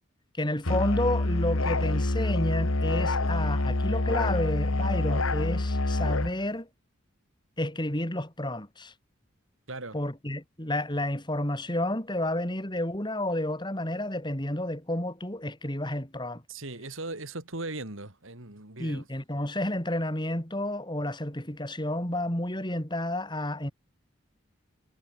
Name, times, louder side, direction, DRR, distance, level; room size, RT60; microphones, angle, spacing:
voice 1, 0.4-6.7 7.6-8.9 9.9-16.4 18.8-23.7, left 1 dB, 20° left, 3.9 m, -31 dB
Musical instrument, 0.6-6.4, left 2 dB, 85° left, 1.9 m, -26 dB
voice 2, 9.7-10.0 16.5-19.1, right 2 dB, 75° right, 3.7 m, -38 dB
head